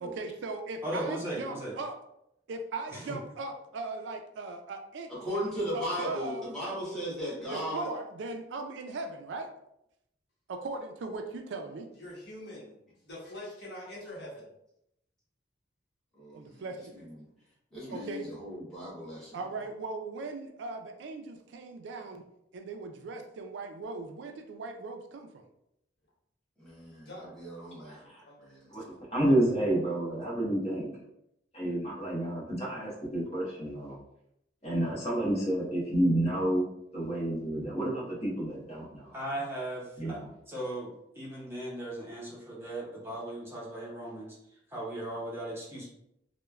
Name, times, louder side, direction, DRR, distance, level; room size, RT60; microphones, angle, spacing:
voice 1, 0.0-1.9 2.5-5.1 5.7-6.5 7.5-9.5 10.5-11.9 16.3-16.9 17.9-18.3 19.3-22.2 22.5-25.4 28.8-29.0, right 3 dB, 75° right, 5 dB, 0.3 m, -39 dB
voice 2, 0.8-1.7 2.9-3.2 39.1-40.2 40.5-44.4 44.7-45.9, right 1 dB, 15° right, -6 dB, 0.6 m, -37 dB
voice 3, 5.1-7.9 16.1-16.6 16.9-17.3 17.7-19.4 26.6-28.0 28.4-28.7, equal, 5° left, -8 dB, 1.0 m, -37 dB
voice 4, 12.0-12.7 13.0-14.5 27.0-27.3 27.9-28.4, left 1 dB, 60° left, -5 dB, 0.9 m, -44 dB
voice 5, 27.9-28.2 28.7-28.8 29.1-30.9 31.5-33.9 34.6-36.7 36.9-39.1 40.0-40.3, right 1 dB, 35° left, -5 dB, 1.0 m, -29 dB
3.1 x 2.1 x 2.3 m, 0.79 s
head